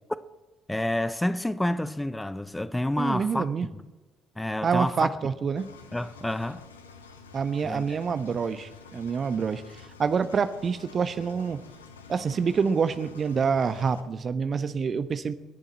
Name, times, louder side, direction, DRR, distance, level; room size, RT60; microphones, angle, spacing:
voice 1, 0.7-3.5 4.4-5.1 5.9-6.6 7.6-8.0, left 1 dB, 10° left, 0.8 m, -29 dB
voice 2, 3.0-3.7 4.6-5.7 7.3-11.6 12.1-15.3, right 6 dB, 40° right, 1.2 m, -27 dB
Engine, 5.6-14.0, left 5 dB, 80° left, 1.0 m, -49 dB
30.0 x 10.5 x 4.3 m
figure-of-eight pair, 45°, 0 cm